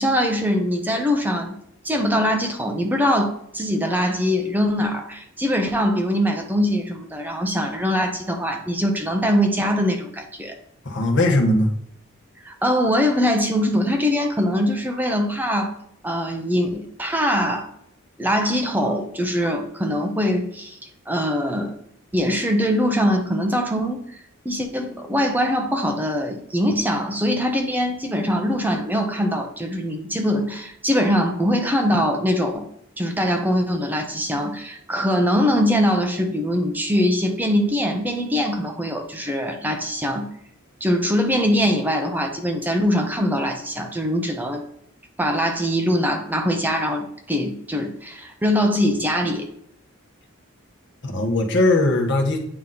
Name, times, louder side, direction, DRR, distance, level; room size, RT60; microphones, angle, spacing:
voice 1, 0.0-1.6 1.8-10.5 12.4-15.7 16.0-17.7 18.2-20.8 21.1-21.8 22.1-24.0 24.4-32.7 33.0-40.3 40.8-44.6 45.2-49.5, equal, 10° right, 3 dB, 0.8 m, -22 dB
voice 2, 10.8-11.7 51.0-52.4, left 2 dB, 55° left, 2 dB, 1.2 m, -19 dB
8.7 x 3.0 x 3.9 m, 0.72 s
head